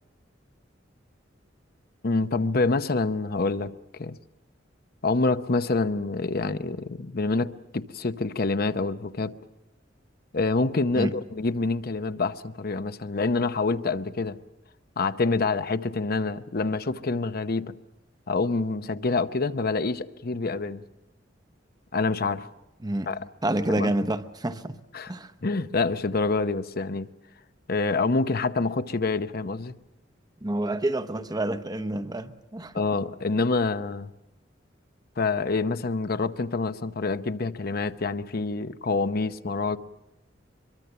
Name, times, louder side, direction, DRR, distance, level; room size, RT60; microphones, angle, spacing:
voice 1, 2.0-4.2 5.0-9.4 10.3-14.4 15.0-17.8 18.3-20.8 21.9-22.5 23.1-23.2 23.7-23.9 24.9-25.1 25.4-27.1 27.7-29.7 32.7-34.1 35.2-39.8, left 3 dB, 55° left, 0.8 m, -26 dB
voice 2, 23.4-24.8 25.1-25.3 30.4-32.7, right 1 dB, 20° right, 1.0 m, -28 dB
24.5 x 23.0 x 6.9 m
head